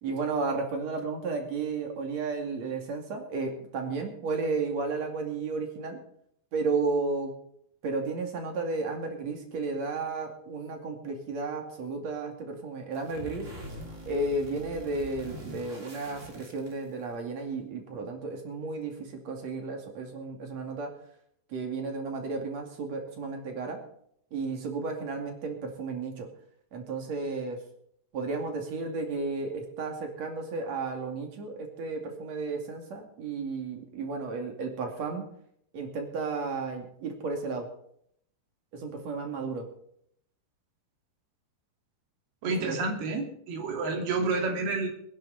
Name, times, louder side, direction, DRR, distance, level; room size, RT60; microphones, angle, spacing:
voice 1, 0.0-6.0 6.5-7.3 7.8-13.5 14.1-20.9 21.5-23.8 24.3-26.3 26.7-27.6 28.1-35.3 35.7-37.7 38.7-39.7 42.6-42.8, right 3 dB, 45° right, 3 dB, 3.2 m, -33 dB
sound 1, 12.9-17.1, equal, 25° right, 2.0 m, -44 dB
voice 2, 42.4-44.9, right 3 dB, 70° right, 3 dB, 4.4 m, -29 dB
21.0 x 10.5 x 4.2 m, 0.68 s
omnidirectional pair, 4.8 m